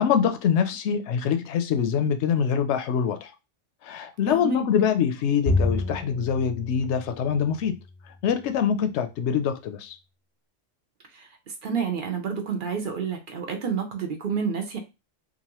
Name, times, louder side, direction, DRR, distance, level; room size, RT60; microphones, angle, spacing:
voice 1, 0.0-3.3 3.8-7.8 8.2-10.0, left 8 dB, 70° left, 0.8 m, -24 dB
voice 2, 4.3-4.7 11.1-11.3 11.6-14.8, right 6 dB, 50° right, 0.7 m, -29 dB
Bowed string instrument, 5.5-8.0, left 2 dB, 10° left, 0.6 m, -29 dB
3.0 x 2.4 x 2.9 m
omnidirectional pair, 1.3 m